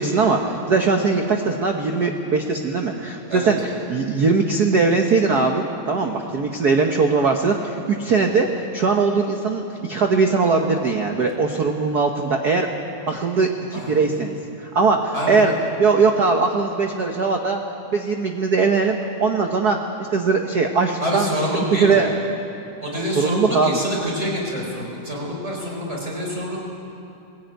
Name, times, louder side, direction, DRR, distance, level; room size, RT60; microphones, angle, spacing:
voice 1, 0.0-3.6 3.9-12.7 13.1-14.3 14.6-15.5 15.8-17.6 17.9-19.8 20.1-21.3 21.7-22.1 23.1-23.8, right 4 dB, 85° right, 3 dB, 0.8 m, -20 dB
voice 2, 21.0-22.0 22.8-26.6, equal, 20° right, -2 dB, 4.7 m, -26 dB
20.5 x 16.5 x 9.2 m, 2.7 s
omnidirectional pair, 3.4 m